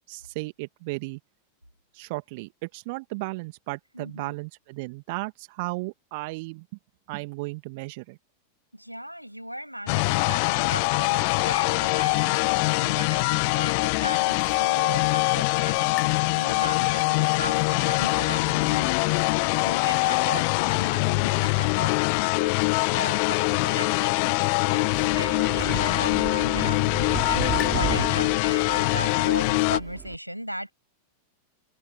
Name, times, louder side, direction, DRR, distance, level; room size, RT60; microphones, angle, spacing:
voice 1, 0.1-1.2 1.9-6.7 7.1-8.2, right 26 dB, 50° right, 2.0 m, -35 dB
voice 2, 3.9-4.4 8.7-19.0 19.6-24.3 24.7-30.7, equal, 90° right, 7.2 m, -37 dB
sound 1, 9.9-29.8, left 32 dB, 45° left, 1.1 m, -23 dB
sound 2, 16.0-27.7, left 12 dB, 30° left, 3.8 m, -38 dB
Wind, 24.9-30.1, right 12 dB, 30° right, 5.1 m, -35 dB
figure-of-eight pair, 90°, 0 cm